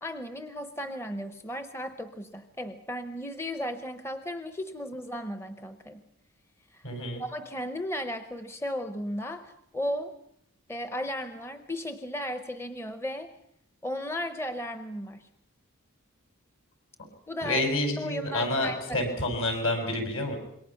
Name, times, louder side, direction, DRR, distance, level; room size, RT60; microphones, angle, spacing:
voice 1, 0.0-6.0 6.7-10.2 10.7-13.3 13.8-15.3 17.3-17.6 18.0-19.0, equal, 10° left, 9 dB, 0.8 m, -35 dB
voice 2, 6.8-7.2 17.4-20.4, left 1 dB, 65° left, 4 dB, 6.6 m, -29 dB
27.0 x 22.5 x 5.8 m, 0.75 s
head